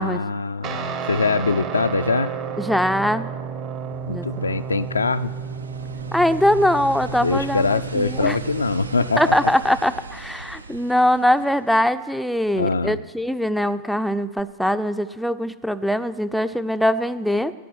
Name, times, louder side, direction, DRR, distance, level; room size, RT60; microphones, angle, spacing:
voice 1, 0.0-2.3 4.0-5.3 7.2-9.3 12.6-13.0, left 4 dB, 75° left, 11 dB, 0.4 m, -23 dB
Guitar, 0.6-9.6, right 6 dB, 40° right, 1.0 m, -32 dB
voice 2, 2.6-3.3 4.1-4.3 6.1-8.4 9.2-17.5, left 1 dB, ahead, 10 dB, 0.4 m, -22 dB
sound 1, 3.7-12.2 14.4-14.5, right 4 dB, 75° right, 0.4 m, -38 dB
13.5 x 9.8 x 6.1 m, 1.4 s
figure-of-eight pair, 90°, 0 cm